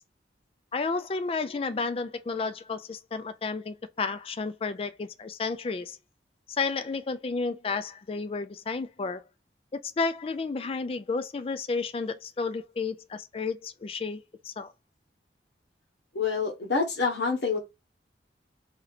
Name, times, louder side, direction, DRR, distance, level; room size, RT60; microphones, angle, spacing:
voice 1, 0.7-6.0 6.5-9.2 9.8-14.7, left 4 dB, 30° left, 0.3 m, -32 dB
voice 2, 16.1-17.6, left 4 dB, 70° left, 1.4 m, -27 dB
2.8 x 2.7 x 4.0 m
head